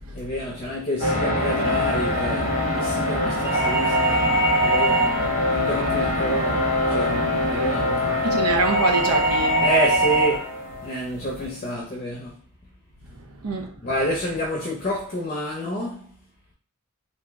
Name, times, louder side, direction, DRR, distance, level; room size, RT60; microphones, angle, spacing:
voice 1, 0.1-8.3 9.6-10.5 10.8-12.4 13.8-16.0, equal, 30° left, 0.6 m, -29 dB
sound 1, 1.0-11.0, left 2 dB, 70° right, 1.2 m, -24 dB
sound 2, 3.4-5.4 8.6-10.4, right 2 dB, 10° right, 0.5 m, -22 dB
voice 2, 5.8-6.1 7.3-7.6 8.2-9.7 13.1-13.9, right 3 dB, 85° right, 0.7 m, -27 dB
3.0 x 2.7 x 3.4 m
head